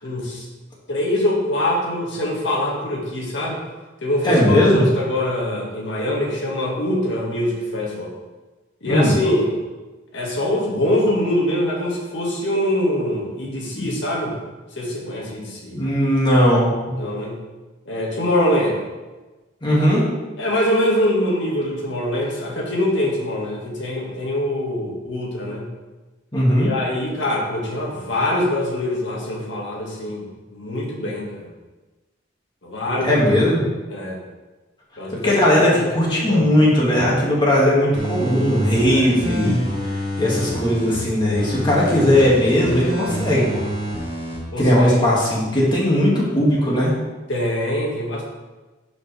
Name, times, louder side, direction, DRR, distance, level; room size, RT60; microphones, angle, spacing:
voice 1, 0.0-0.4 0.9-3.6 4.0-8.1 8.8-9.5 10.1-14.3 14.8-15.8 16.9-17.4 17.9-18.8 20.4-25.7 26.6-30.2 30.5-31.5 32.6-33.2 33.9-34.2 35.0-35.3 35.6-36.5 38.9-39.1 44.5-45.1 47.3-48.2, left 1 dB, 70° left, -3 dB, 2.1 m, -23 dB
voice 2, 4.2-4.9 8.8-9.1 13.7-13.9 15.8-16.9 19.6-20.1 26.3-26.7 33.0-33.6 35.2-39.6 40.2-43.7 44.6-46.9, equal, 25° left, -5 dB, 2.2 m, -18 dB
sound 1, 37.9-40.9 41.4-44.4 44.8-44.9, equal, 30° right, 2.4 m, -27 dB
11.0 x 5.2 x 3.5 m, 1.2 s
head